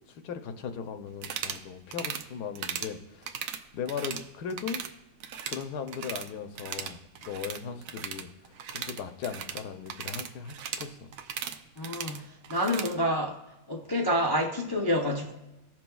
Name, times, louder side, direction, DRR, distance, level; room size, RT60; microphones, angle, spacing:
voice 1, 0.1-3.5 3.7-4.8 5.5-8.3 8.7-11.1, left 7 dB, 80° left, 8 dB, 1.2 m, -38 dB
sound 1, 1.1-1.6 1.9-2.2 2.5-2.9 3.2-4.2 4.5-4.9 5.2-6.3 6.5-12.9, right 8 dB, 70° right, 0.9 m, -37 dB
voice 2, 11.8-12.2 12.5-13.4 13.7-15.3, equal, 40° left, -1 dB, 0.3 m, -28 dB
15.5 x 6.0 x 2.3 m, 1.0 s
omnidirectional pair, 1.8 m